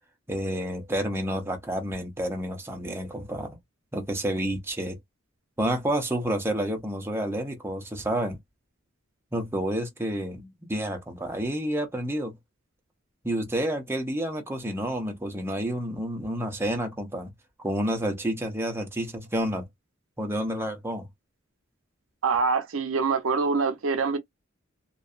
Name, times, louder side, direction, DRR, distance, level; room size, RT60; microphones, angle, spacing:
voice 1, 0.3-3.6 3.9-5.0 5.6-8.4 9.3-12.3 13.2-17.3 17.6-19.6 20.2-21.1, right 1 dB, 10° right, 0.6 m, -29 dB
voice 2, 22.2-24.2, right 4 dB, 85° right, 0.6 m, -25 dB
2.6 x 2.2 x 2.3 m
head